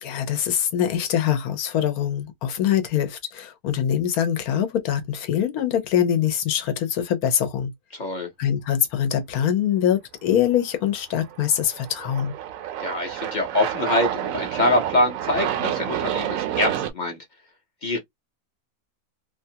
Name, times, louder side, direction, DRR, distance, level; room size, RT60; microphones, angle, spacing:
voice 1, 0.0-7.7 8.4-12.3, left 9 dB, 80° left, 1.2 m, -23 dB
voice 2, 7.9-8.3 12.8-17.2 17.8-18.0, left 1 dB, 40° left, 0.8 m, -24 dB
Aircraft, 11.2-16.9, right 11 dB, 70° right, 0.9 m, -29 dB
2.8 x 2.3 x 2.7 m
omnidirectional pair, 1.5 m